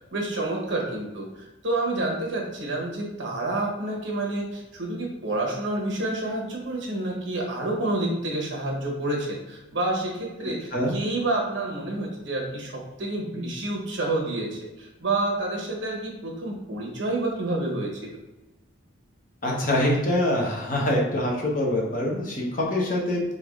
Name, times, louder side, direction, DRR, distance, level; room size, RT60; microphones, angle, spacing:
voice 1, 0.1-18.0, right 2 dB, 65° right, -1 dB, 1.0 m, -29 dB
voice 2, 19.4-23.2, left 1 dB, 40° left, -2 dB, 0.9 m, -24 dB
3.8 x 3.5 x 3.6 m, 1.0 s
head